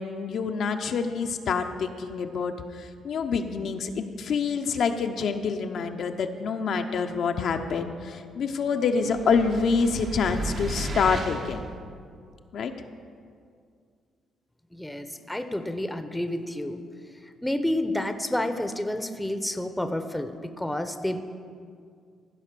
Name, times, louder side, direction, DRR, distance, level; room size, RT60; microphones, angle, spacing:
voice 1, 0.0-11.7 12.5-12.7, left 5 dB, 65° left, 5 dB, 0.7 m, -27 dB
sound 1, 9.0-11.6, right 2 dB, 55° right, 1.0 m, -34 dB
voice 2, 14.7-16.8 17.2-21.3, left 1 dB, 5° left, 8 dB, 0.7 m, -30 dB
15.0 x 5.1 x 6.7 m, 2.2 s
cardioid pair, 90°, 0 cm